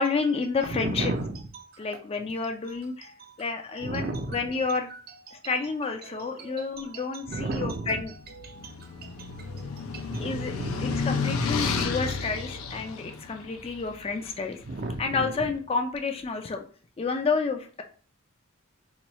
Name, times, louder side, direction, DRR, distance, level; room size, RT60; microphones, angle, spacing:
voice 1, 0.0-1.1 1.8-3.1 3.4-4.9 5.4-8.1 10.2-10.6 10.8-14.6 15.0-16.6 17.0-17.8, left 4 dB, 30° left, 5 dB, 0.3 m, -30 dB
voice 2, 0.7-2.0 2.7-3.4 3.8-5.6 5.9-11.4 14.6-15.5, right 2 dB, 45° right, 6 dB, 0.5 m, -36 dB
sound 1, 8.2-14.4, left 5 dB, 90° left, 0.5 m, -31 dB
3.0 x 2.3 x 4.0 m, 0.43 s
head